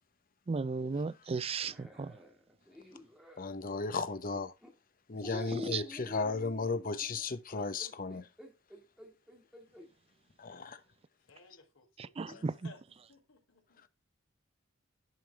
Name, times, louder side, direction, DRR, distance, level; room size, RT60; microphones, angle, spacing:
voice 1, 0.5-2.1 5.5-5.8 12.2-12.5, right 4 dB, 30° right, 0.4 m, -35 dB
sound 1, 1.6-3.5 4.3-4.7 5.2-9.9 10.5-10.6 12.2-12.5, left 1 dB, 5° right, 1.9 m, -48 dB
voice 2, 3.4-4.5 5.1-8.3 10.4-10.8, left 4 dB, 45° left, 0.9 m, -35 dB
voice 3, 11.2-12.8 13.1-13.9, left 3 dB, 75° left, 3.5 m, -59 dB
11.0 x 4.9 x 3.3 m
head